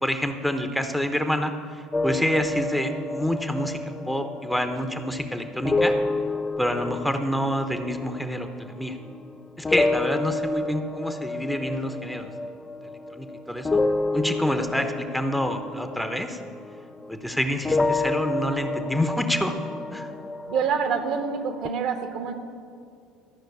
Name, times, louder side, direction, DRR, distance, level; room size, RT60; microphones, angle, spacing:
voice 1, 0.0-3.8 4.0-5.9 6.6-9.0 9.6-12.3 13.1-13.8 14.1-16.4 17.1-19.5 19.9-20.1, equal, ahead, 6 dB, 1.0 m, -27 dB
sound 1, 1.9-9.3 9.6-17.3 17.6-21.7, left 3 dB, 20° left, 0.4 m, -29 dB
voice 2, 20.5-22.3, right 6 dB, 55° right, 6 dB, 1.4 m, -26 dB
13.5 x 6.2 x 8.2 m, 2.4 s
figure-of-eight pair, 65°, 0 cm